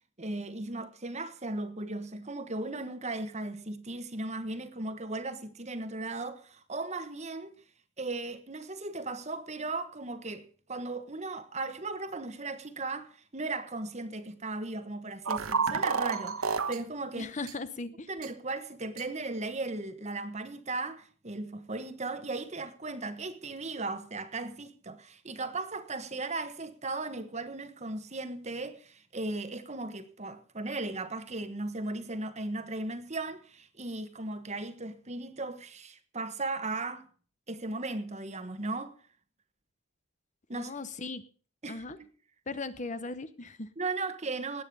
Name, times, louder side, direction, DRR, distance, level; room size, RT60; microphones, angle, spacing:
voice 1, 0.2-7.5 8.0-17.3 18.1-37.1 37.5-39.0 40.5-40.7 41.6-42.0 43.8-44.6, right 2 dB, 30° right, 1.3 m, -37 dB
sound 1, 15.3-16.8 17.5-17.6 18.2-18.3 19.0-19.1, right 5 dB, 70° right, 1.2 m, -30 dB
voice 2, 17.2-18.1 40.5-41.2 41.7-42.0 42.5-43.7, left 3 dB, 35° left, 0.8 m, -38 dB
19.0 x 8.9 x 5.4 m
head